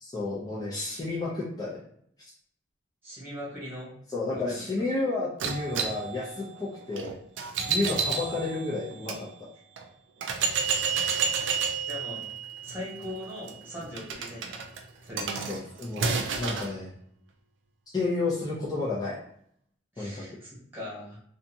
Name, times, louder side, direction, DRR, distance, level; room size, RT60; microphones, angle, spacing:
voice 1, 0.0-1.8 4.1-7.2 7.7-9.3 15.5-16.9 17.9-19.2 20.0-20.2, left 3 dB, 20° left, -7 dB, 0.5 m, -31 dB
voice 2, 3.0-4.0 4.3-4.6 11.8-12.2 12.6-14.7 15.0-15.5 19.9-21.2, left 1 dB, 10° right, -7 dB, 1.3 m, -40 dB
sound 1, 5.4-9.2 9.8-9.9 10.2-16.7, right 5 dB, 85° right, 0.4 m, -31 dB
2.7 x 2.3 x 2.6 m, 0.68 s
head